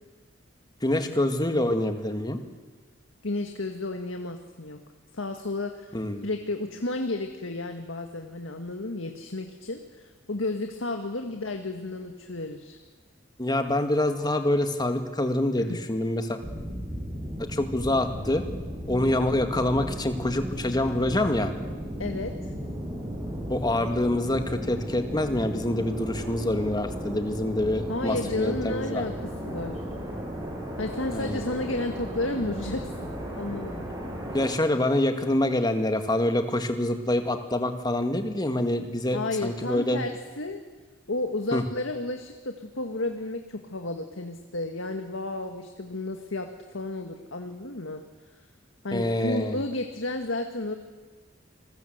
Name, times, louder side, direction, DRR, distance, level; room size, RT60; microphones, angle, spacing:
voice 1, 0.8-2.4 5.9-6.3 13.4-16.4 17.5-18.4 18.9-21.5 23.5-29.0 31.1-31.5 34.3-40.0 41.5-41.6 48.9-49.6, left 1 dB, 20° left, 6 dB, 2.2 m, -26 dB
voice 2, 3.2-4.8 5.1-6.0 6.2-12.8 15.6-15.8 22.0-22.3 27.9-29.1 29.4-29.8 30.8-33.9 39.1-40.6 41.1-48.0 48.8-50.7, left 2 dB, 85° left, 5 dB, 1.8 m, -32 dB
sound 1, 16.4-34.5, equal, 20° right, 6.7 m, -35 dB
28.5 x 21.0 x 8.1 m, 1.3 s
head